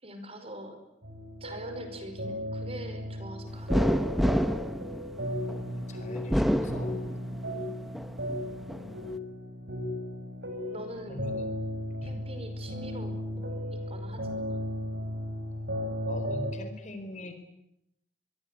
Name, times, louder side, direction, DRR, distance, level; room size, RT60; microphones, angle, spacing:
voice 1, 0.0-0.8 1.4-4.0 7.5-7.7 10.7-11.3 12.0-14.6, right 1 dB, 35° right, 7 dB, 5.2 m, -44 dB
sound 1, 1.0-16.5, equal, 75° right, 7.2 m, -36 dB
sound 2, 3.7-5.6 6.2-7.5 7.9-8.8, equal, ahead, 1.1 m, -27 dB
voice 2, 5.5-7.0 8.4-9.2 11.1-11.6 12.0-12.2 16.1-17.3, left 1 dB, 40° left, 8 dB, 4.6 m, -42 dB
26.5 x 22.5 x 9.8 m, 0.81 s
head